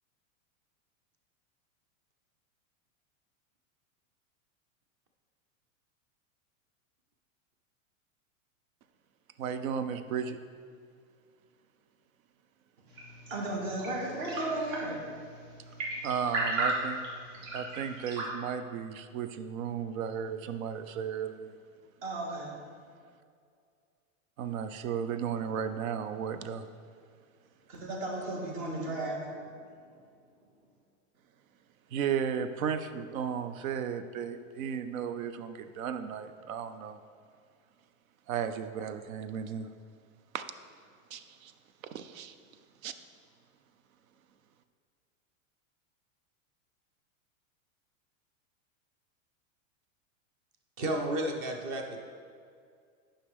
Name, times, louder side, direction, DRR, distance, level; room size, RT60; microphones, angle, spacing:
voice 1, 9.4-10.4 16.0-17.0 17.5-21.6 24.4-26.7 31.9-37.0 38.3-39.7 40.3-40.4 41.1-41.5 41.9-42.4 42.8-42.9, right 7 dB, 85° right, 10 dB, 0.7 m, -34 dB
sound 1, 12.9-18.3, right 2 dB, 70° right, 2.0 m, -36 dB
voice 2, 13.3-15.0 22.0-22.5 27.7-29.3, right 2 dB, 50° right, -2 dB, 1.9 m, -34 dB
voice 3, 50.8-52.0, right 1 dB, 20° right, 3 dB, 0.4 m, -32 dB
10.0 x 5.6 x 3.6 m, 2.2 s
supercardioid pair, 170°, 40 cm